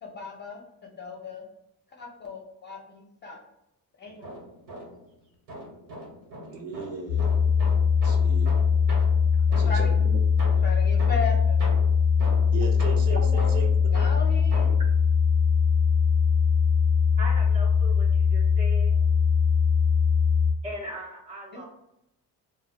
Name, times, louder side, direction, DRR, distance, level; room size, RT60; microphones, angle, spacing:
voice 1, 0.0-1.4 2.0-3.4 4.0-4.3 9.5-9.9 10.6-11.6 13.1-14.7 21.5-21.6, left 4 dB, 30° left, -1 dB, 0.6 m, -36 dB
sound 1, 4.0-5.1 5.5-10.0 10.4-14.9, equal, 85° right, 1.2 m, -40 dB
voice 2, 6.4-8.6 9.6-10.2 12.5-13.7, right 5 dB, 65° right, 1 dB, 0.8 m, -37 dB
sound 2, 7.1-20.5, left 6 dB, 70° left, 0.5 m, -21 dB
voice 3, 17.2-18.9 20.6-21.6, right 1 dB, 20° right, -3 dB, 0.4 m, -39 dB
2.3 x 2.2 x 3.3 m, 0.84 s
cardioid pair, 155°, 36 cm